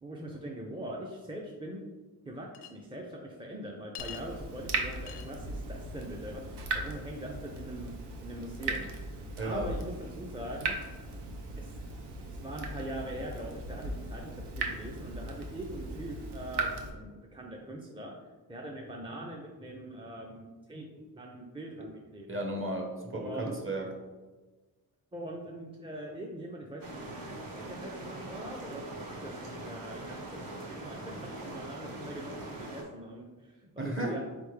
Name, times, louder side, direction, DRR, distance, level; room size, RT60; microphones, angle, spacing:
voice 1, 0.0-1.8 2.3-7.9 8.2-8.9 9.4-10.7 11.6-11.8 12.3-18.1 18.5-22.3 23.1-23.6 25.1-27.2 27.6-28.9 29.2-34.2, right 1 dB, 15° right, -1 dB, 0.4 m, -42 dB
Chink clink, 2.5-2.7 3.9-4.2 5.1-5.3, left 12 dB, 85° left, 0.5 m, -43 dB
Water tap faucet / Drip, 4.0-16.9, right 3 dB, 90° right, 0.7 m, -38 dB
voice 2, 9.4-9.7 22.3-23.9 33.8-34.2, right 1 dB, 30° right, 1 dB, 0.9 m, -34 dB
sound 1, 26.8-32.8, right 2 dB, 60° right, 0.9 m, -42 dB
4.2 x 3.4 x 3.2 m, 1.3 s
cardioid pair, 90°, 39 cm